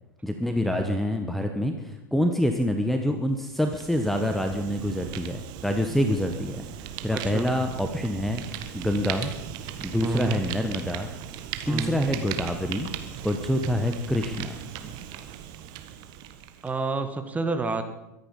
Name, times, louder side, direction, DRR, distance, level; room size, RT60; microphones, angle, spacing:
voice 1, 0.2-8.4 8.7-9.3 9.8-11.1 11.6-12.9 13.2-14.5, equal, ahead, 5 dB, 1.3 m, -26 dB
Fire, 3.4-16.8, right 10 dB, 45° right, 1.7 m, -38 dB
voice 2, 7.1-7.5 10.0-10.4 11.7-12.0 14.2-15.0 16.6-17.8, right 3 dB, 15° right, 7 dB, 1.8 m, -30 dB
23.0 x 10.0 x 5.5 m, 0.99 s
figure-of-eight pair, 90°, 10 cm